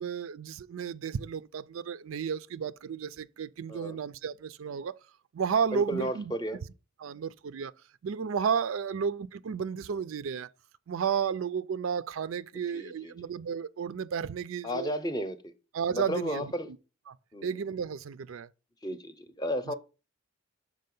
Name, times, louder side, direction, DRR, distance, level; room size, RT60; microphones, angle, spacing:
voice 1, 0.0-4.9 5.3-6.2 7.0-7.7 8.0-10.5 10.9-14.9 15.7-16.5 17.1-17.2 17.4-18.5, right 6 dB, 75° right, 0.4 m, -32 dB
voice 2, 5.7-6.6 12.7-13.1 14.6-15.5 15.9-16.7 17.3-17.6 18.8-19.7, equal, 20° left, 0.7 m, -33 dB
6.6 x 4.9 x 5.3 m
head